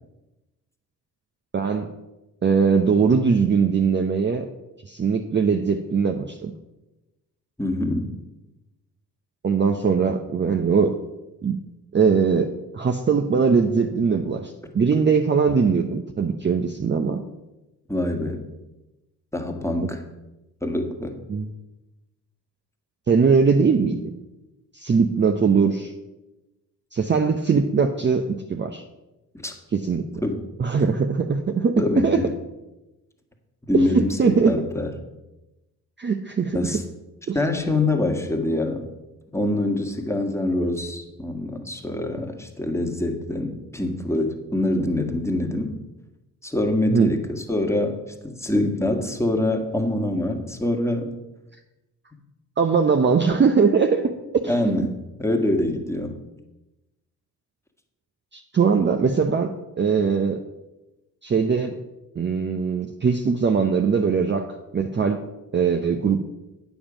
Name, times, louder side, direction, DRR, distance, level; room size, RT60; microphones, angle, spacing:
voice 1, 1.5-1.9 2.4-4.5 4.9-6.5 9.4-11.0 11.4-11.6 11.9-17.2 21.3-21.5 23.1-24.1 24.7-25.9 26.9-28.8 29.7-30.2 30.6-32.2 33.7-34.6 36.0-36.7 37.3-37.4 46.9-47.1 52.6-54.1 54.4-54.7 58.3-60.4 61.2-61.8 62.2-65.2 65.5-66.3, right 5 dB, 25° right, 5 dB, 0.7 m, -21 dB
voice 2, 7.6-8.1 14.9-15.0 17.9-18.4 19.3-20.0 20.6-21.2 29.4-29.5 30.2-30.4 31.8-32.3 33.7-34.9 36.5-36.8 37.3-38.9 39.3-45.7 46.4-48.0 48.2-51.1 54.5-56.2, left 1 dB, 5° left, 3 dB, 1.6 m, -25 dB
8.7 x 7.2 x 5.0 m, 1.0 s
hypercardioid pair, 50°, 44 cm